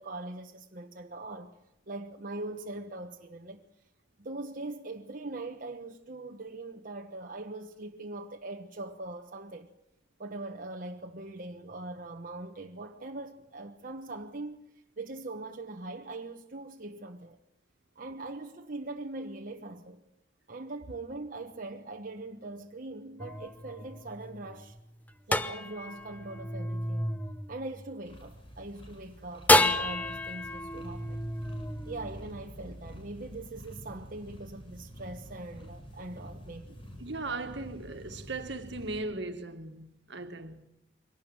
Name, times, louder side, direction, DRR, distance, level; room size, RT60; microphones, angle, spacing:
voice 1, 0.0-1.6 1.9-3.6 4.2-9.7 10.2-14.7 15.0-17.4 17.9-20.0 20.5-24.8 25.3-27.2 27.5-31.2 31.9-36.8, right 2 dB, 50° right, 1.2 m, -41 dB
sound 1, 23.2-28.5 29.5-32.8, left 1 dB, 10° left, 0.9 m, -30 dB
sound 2, 28.1-39.0, equal, 30° left, 7.3 m, -48 dB
voice 2, 37.0-40.6, right 3 dB, 70° right, 1.9 m, -38 dB
23.5 x 18.5 x 8.9 m
head